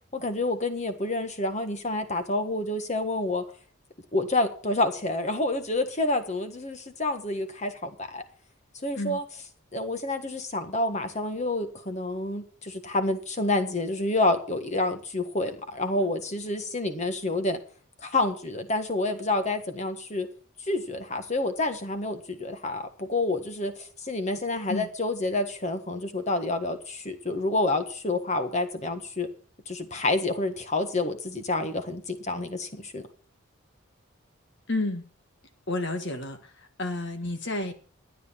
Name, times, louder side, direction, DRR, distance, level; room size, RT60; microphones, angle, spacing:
voice 1, 0.1-3.4 4.1-8.2 8.8-9.2 9.7-17.6 18.0-20.3 20.7-29.3 29.7-33.1, left 2 dB, 35° left, 8 dB, 1.5 m, -28 dB
voice 2, 34.7-35.1 35.7-36.5 36.8-37.7, left 2 dB, 55° left, 7 dB, 1.5 m, -30 dB
13.0 x 9.4 x 5.7 m, 0.43 s
head